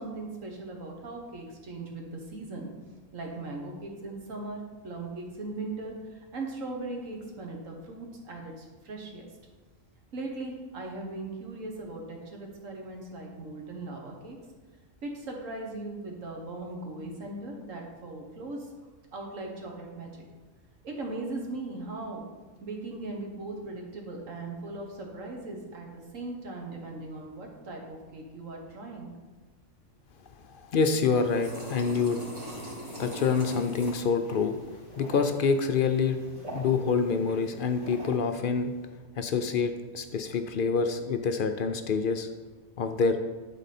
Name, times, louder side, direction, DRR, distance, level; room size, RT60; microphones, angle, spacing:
voice 1, 0.0-2.7 3.1-4.6 4.8-9.2 10.1-14.4 15.0-18.7 19.1-20.2 20.8-22.2 22.6-29.1, right 2 dB, 75° right, 1 dB, 1.7 m, -39 dB
voice 2, 30.4-32.2 33.0-34.6 35.0-36.2 36.5-38.7 39.2-42.3 42.8-43.2, left 5 dB, 60° left, 7 dB, 0.5 m, -26 dB
sound 1, 31.0-38.2, equal, 30° right, 2.3 m, -42 dB
11.5 x 4.1 x 4.2 m, 1.3 s
omnidirectional pair, 1.4 m